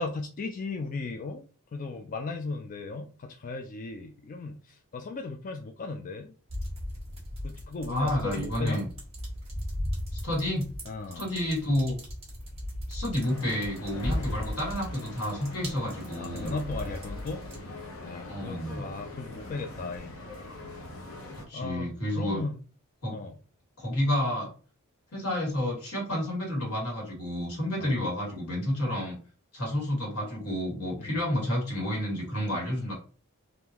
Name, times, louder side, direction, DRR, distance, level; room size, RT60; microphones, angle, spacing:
voice 1, 0.0-6.3 7.4-8.8 10.9-11.2 16.2-17.4 18.0-20.1 21.3-22.6 23.1-23.4 27.8-28.0 31.0-31.2, left 3 dB, 40° left, 4 dB, 0.3 m, -36 dB
sound 1, 6.5-17.6, left 1 dB, 25° right, 1.5 m, -37 dB
voice 2, 7.9-8.9 10.2-10.7 11.1-12.0 12.9-16.6 18.3-18.8 21.5-22.4 23.0-23.2 23.8-24.5 25.1-29.1 29.5-32.9, left 1 dB, 85° left, -2 dB, 1.8 m, -30 dB
sound 2, 13.2-21.5, left 2 dB, 65° left, 0.8 m, -43 dB
3.7 x 2.6 x 2.8 m, 0.38 s
head